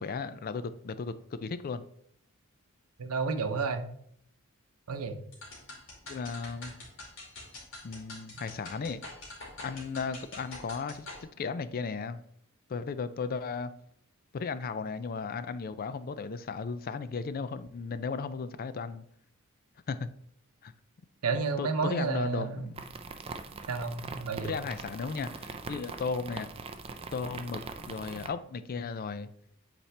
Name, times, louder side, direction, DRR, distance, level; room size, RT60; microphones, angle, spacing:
voice 1, 0.0-1.8 6.1-6.7 7.8-9.0 9.6-12.2 12.7-13.7 14.3-19.0 19.9-20.1 20.6-20.7 21.6-22.8 24.4-26.5 27.1-29.3, left 5 dB, 40° left, 0.4 m, -35 dB
voice 2, 3.0-3.9 4.9-5.2 21.2-22.7 23.7-24.6, right 4 dB, 90° right, 0.7 m, -31 dB
sound 1, 5.3-11.2, left 2 dB, 60° left, 2.4 m, -46 dB
sound 2, 22.8-28.3, right 4 dB, 25° right, 0.4 m, -42 dB
8.3 x 4.3 x 3.3 m
head